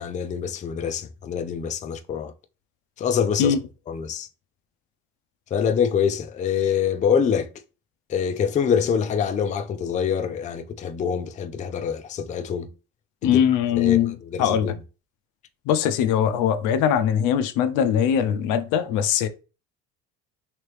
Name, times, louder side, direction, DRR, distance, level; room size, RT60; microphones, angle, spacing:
voice 1, 0.0-2.3 3.0-3.6 3.9-4.3 5.5-7.5 8.1-12.7 13.2-13.4 13.8-14.8, left 7 dB, 25° left, 0.3 m, -25 dB
voice 2, 13.2-14.7 15.7-19.3, left 9 dB, 85° left, 0.5 m, -21 dB
3.1 x 2.8 x 3.2 m
cardioid pair, 105°, 30 cm